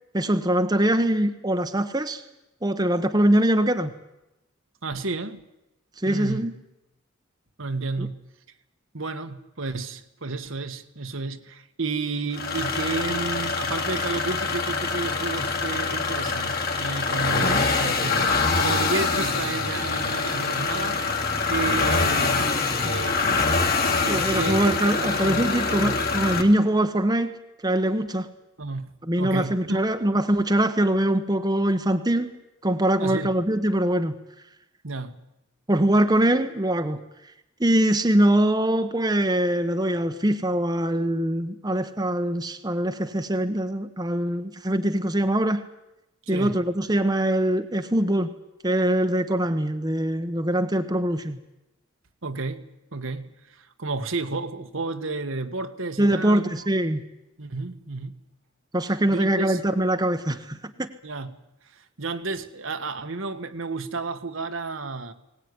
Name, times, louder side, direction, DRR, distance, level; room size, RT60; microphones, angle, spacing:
voice 1, 0.1-2.2 2.6-3.9 6.0-6.5 8.0-8.1 17.4-17.6 24.1-27.4 27.6-28.3 29.1-32.3 32.6-34.2 35.7-37.0 37.6-45.6 46.3-48.3 48.6-51.4 56.0-57.0 58.7-60.9, right 1 dB, 20° right, 1.2 m, -23 dB
voice 2, 4.8-5.4 6.0-6.5 7.6-8.2 8.9-21.0 21.5-22.5 22.8-24.6 25.0-25.4 25.8-26.0 28.6-29.9 33.0-33.3 34.8-35.1 46.3-46.6 52.2-56.6 57.4-58.1 59.1-59.6 61.0-61.3 61.7-65.1, right 3 dB, 65° right, 1.6 m, -32 dB
sound 1, 12.3-26.4, left 4 dB, 45° left, 3.0 m, -25 dB
21.5 x 19.0 x 9.7 m
head